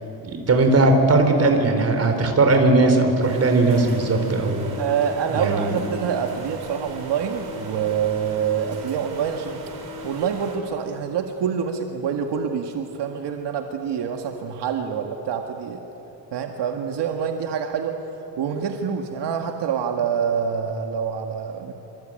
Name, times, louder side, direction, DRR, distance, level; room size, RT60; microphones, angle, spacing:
voice 1, 0.2-4.7 5.3-5.8, right 2 dB, 35° right, 5 dB, 3.9 m, -18 dB
sound 1, 3.2-10.6, right 1 dB, 60° right, 4.8 m, -39 dB
voice 2, 4.7-9.6 10.0-15.8 16.3-18.0 18.4-21.7, right 7 dB, 75° right, 4 dB, 2.0 m, -26 dB
26.0 x 25.5 x 9.0 m, 3.0 s
cardioid pair, 150°, 41 cm